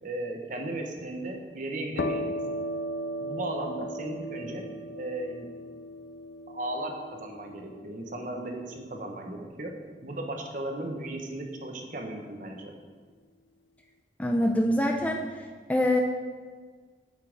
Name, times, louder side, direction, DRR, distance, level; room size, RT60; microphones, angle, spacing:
voice 1, 0.0-2.6 3.2-5.5 6.5-9.7 10.0-12.7, right 1 dB, 45° right, 2 dB, 1.1 m, -36 dB
sound 1, 2.0-9.4, equal, 70° left, 0.5 m, -37 dB
voice 2, 14.2-15.2 15.7-16.0, left 1 dB, 10° left, 2 dB, 0.5 m, -24 dB
8.8 x 5.6 x 6.5 m, 1.6 s
head